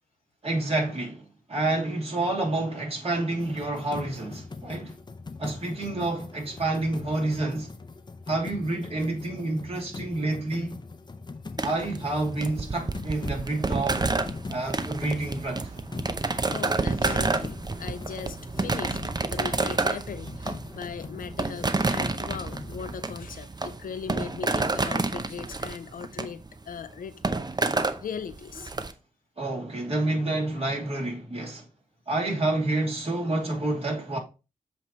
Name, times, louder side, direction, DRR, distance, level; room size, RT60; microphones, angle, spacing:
voice 1, 0.4-5.0 5.4-7.7 8.3-10.8 11.6-14.0 14.5-15.7 29.4-31.7 32.1-34.2, right 2 dB, 45° right, 2.8 m, -28 dB
sound 1, 3.4-23.2, left 3 dB, 30° left, 0.7 m, -41 dB
sound 2, 11.6-28.9, right 3 dB, 30° right, 0.7 m, -29 dB
voice 2, 16.5-26.4 26.7-27.2 27.6-28.7, left 7 dB, 80° left, 0.6 m, -39 dB
7.5 x 3.1 x 4.0 m
cardioid pair, 50°, 14 cm